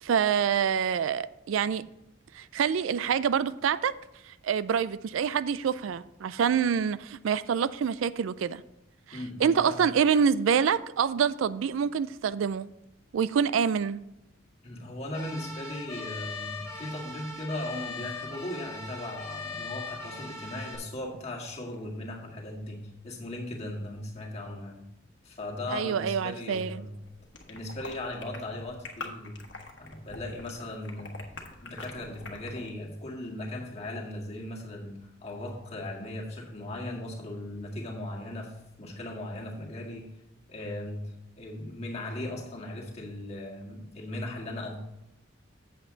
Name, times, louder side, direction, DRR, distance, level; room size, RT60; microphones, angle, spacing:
voice 1, 0.0-1.8 2.3-3.9 4.3-8.6 9.1-12.7 13.1-14.0 25.7-26.8, right 7 dB, 80° right, 0.4 m, -26 dB
voice 2, 9.1-9.9 14.6-24.8 25.2-26.9 27.5-29.4 29.8-31.2 31.6-40.1 40.5-44.8, left 1 dB, 35° left, 1.8 m, -38 dB
sound 1, 15.1-20.8, left 3 dB, 15° left, 1.8 m, -40 dB
sound 2, 27.0-32.7, left 3 dB, 65° left, 1.4 m, -45 dB
8.3 x 7.5 x 3.9 m
head